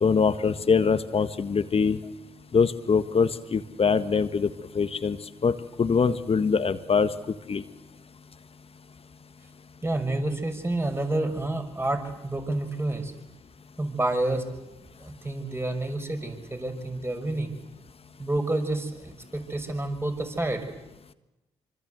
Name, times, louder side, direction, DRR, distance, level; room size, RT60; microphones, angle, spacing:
voice 1, 0.0-2.0 2.5-4.5 4.7-5.2 5.4-7.1 7.5-7.6, left 5 dB, 40° left, 12 dB, 1.6 m, -23 dB
voice 2, 9.8-13.1 13.8-14.5 15.0-17.5 18.2-20.7, right 2 dB, 15° right, 6 dB, 5.9 m, -29 dB
26.0 x 26.0 x 8.0 m, 0.97 s
hypercardioid pair, 40°, 15 cm